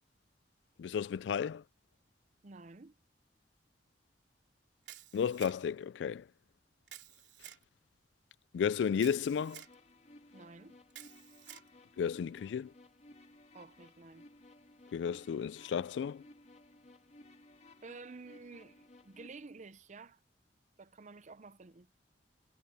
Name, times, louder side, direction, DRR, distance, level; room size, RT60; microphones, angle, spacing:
voice 1, 0.8-1.6 5.1-6.3 8.5-9.6 12.0-12.7 14.9-16.3, left 7 dB, 75° left, 0.3 m, -33 dB
voice 2, 2.4-3.0 10.3-10.8 13.5-14.2 17.8-20.2 20.8-21.9, right 3 dB, 40° right, 0.7 m, -51 dB
Camera, 4.9-5.8 6.9-7.6 9.0-9.7 10.9-11.7, right 12 dB, 70° right, 3.5 m, -52 dB
sound 1, 8.9-19.3, left 2 dB, 40° left, 2.0 m, -59 dB
head